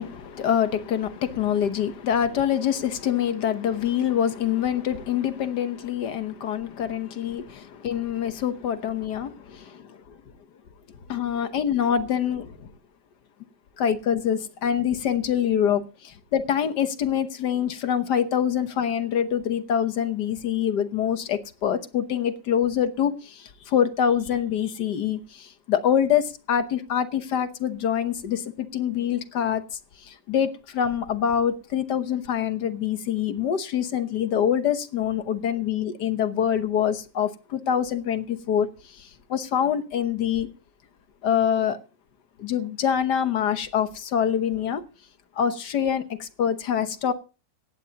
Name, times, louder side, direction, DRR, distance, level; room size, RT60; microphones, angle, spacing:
voice 1, 0.0-10.2 11.1-12.7 13.8-40.5 41.2-41.8 42.4-44.8 45.3-47.1, left 9 dB, 65° left, 1.6 m, -25 dB
17.0 x 14.5 x 2.9 m
omnidirectional pair, 2.0 m